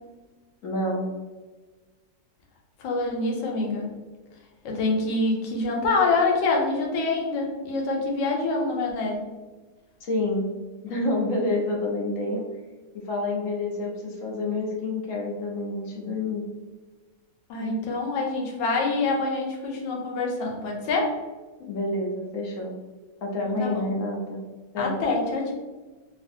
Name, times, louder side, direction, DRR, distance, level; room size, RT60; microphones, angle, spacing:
voice 1, 0.6-1.1 10.0-10.5 10.8-12.4 13.1-16.4 17.6-17.7 21.6-22.7 23.2-24.4 24.7-25.0, left 2 dB, 65° left, -1 dB, 0.8 m, -28 dB
voice 2, 2.8-3.9 4.6-9.2 17.5-21.2 23.4-23.8 24.8-25.5, left 3 dB, 85° left, 0 dB, 1.3 m, -26 dB
3.3 x 2.4 x 2.6 m, 1.3 s
omnidirectional pair, 1.9 m